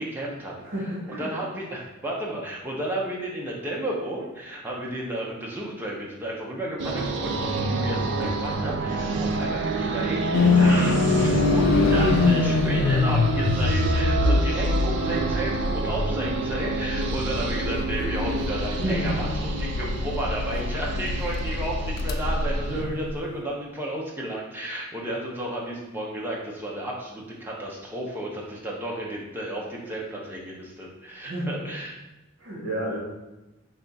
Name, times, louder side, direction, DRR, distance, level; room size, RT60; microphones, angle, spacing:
voice 1, 0.0-0.6 1.1-32.0, right 1 dB, 10° right, -4 dB, 0.6 m, -33 dB
voice 2, 0.6-1.3 14.1-14.6 15.1-15.3 18.8-19.3 22.7-22.9 31.2-31.6 32.4-33.0, right 1 dB, 75° right, -6 dB, 1.0 m, -31 dB
sound 1, 6.8-22.8, right 4 dB, 60° right, 0.3 m, -28 dB
sound 2, 10.3-23.4, left 4 dB, 75° left, 0.3 m, -24 dB
3.4 x 2.4 x 3.9 m, 1.0 s
head